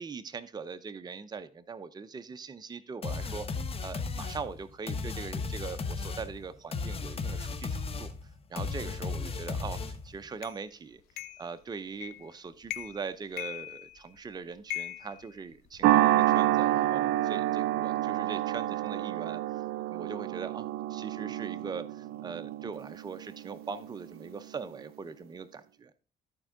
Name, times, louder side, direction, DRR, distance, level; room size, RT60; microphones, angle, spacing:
voice 1, 0.0-3.5 3.8-8.1 8.5-11.0 11.4-19.6 19.9-25.9, right 5 dB, 25° right, 10 dB, 0.7 m, -41 dB
sound 1, 3.0-10.2, left 4 dB, 40° left, 1.4 m, -35 dB
sound 2, 10.4-10.6 11.2-11.5 12.0-12.3 12.6-13.1 13.4-14.2 14.7-15.9, left 15 dB, 85° left, 0.7 m, -39 dB
sound 3, 15.8-24.3, right 14 dB, 85° right, 0.4 m, -28 dB
13.5 x 4.5 x 3.7 m, 0.35 s
cardioid pair, 90°, 16 cm